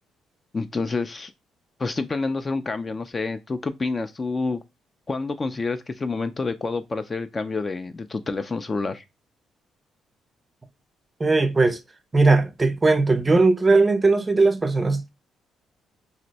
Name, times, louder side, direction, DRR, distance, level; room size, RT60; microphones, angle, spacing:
voice 1, 0.5-1.3 1.8-4.6 5.1-9.0, left 3 dB, 30° left, 0.3 m, -28 dB
voice 2, 11.2-11.8 12.1-15.1, right 3 dB, 25° right, 0.5 m, -19 dB
2.6 x 2.0 x 4.0 m
cardioid pair, 90°, 0 cm